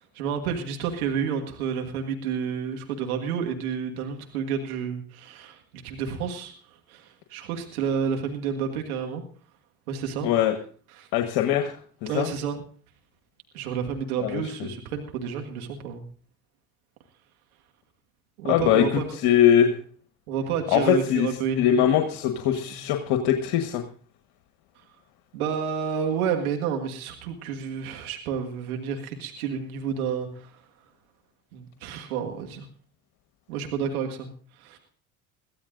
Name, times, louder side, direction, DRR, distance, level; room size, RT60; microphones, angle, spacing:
voice 1, 0.1-6.5 6.9-9.2 9.9-10.3 11.0-11.1 12.1-12.6 13.5-16.0 18.4-19.0 20.3-21.8 25.3-30.6 31.5-32.7 33.5-34.3 34.6-34.8, right 7 dB, 80° right, 3 dB, 1.8 m, -30 dB
voice 2, 10.2-10.6 11.1-12.3 14.2-14.4 18.5-19.7 20.7-21.3 21.6-23.8, left 10 dB, 65° left, 4 dB, 1.4 m, -22 dB
22.0 x 15.0 x 2.6 m, 0.43 s
hypercardioid pair, 65°, 43 cm